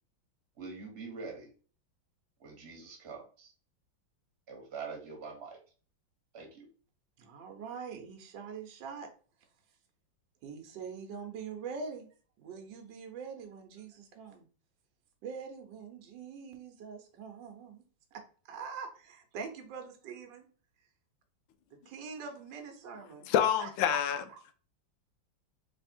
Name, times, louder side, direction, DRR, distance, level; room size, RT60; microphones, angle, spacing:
voice 1, 0.6-1.5 2.4-3.5 4.5-5.6 6.3-6.7, right 4 dB, 40° right, 1.3 m, -44 dB
voice 2, 7.2-9.1 10.4-12.1 12.4-14.5 15.2-17.8 18.1-18.9 19.3-20.4 21.7-23.3 23.6-24.0 24.3-24.5, right 5 dB, 70° right, 1.4 m, -43 dB
voice 3, 23.3-24.2, left 10 dB, 85° left, 1.3 m, -27 dB
3.4 x 3.4 x 4.2 m
omnidirectional pair, 2.1 m